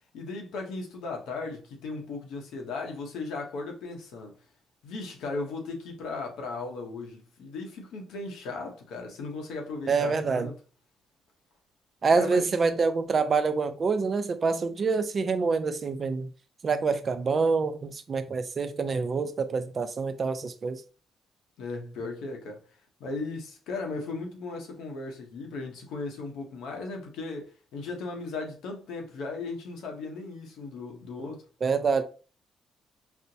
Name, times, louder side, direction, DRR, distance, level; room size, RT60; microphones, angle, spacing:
voice 1, 0.1-4.3 4.8-10.5 12.1-12.5 21.6-22.6 23.0-31.4, left 3 dB, 85° left, 0.9 m, -36 dB
voice 2, 9.9-10.5 12.0-16.3 16.6-20.8 31.6-32.0, right 4 dB, 40° right, 0.5 m, -26 dB
4.3 x 2.1 x 2.7 m
cardioid pair, 90°, 0 cm